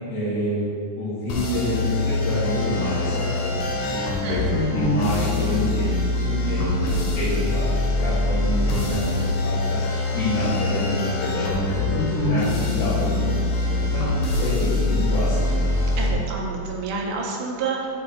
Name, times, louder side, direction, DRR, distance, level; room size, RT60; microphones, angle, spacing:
voice 1, 0.1-0.7 1.0-4.0 4.2-9.8 10.1-14.0 14.4-15.6, equal, 85° left, -14 dB, 3.7 m, -27 dB
sound 1, 1.3-16.1, left 2 dB, 70° left, 2.4 m, -24 dB
voice 2, 4.2-4.7 16.0-17.9, right 4 dB, 85° right, -1 dB, 2.6 m, -29 dB
8.4 x 4.8 x 3.8 m, 2.6 s
omnidirectional pair, 4.3 m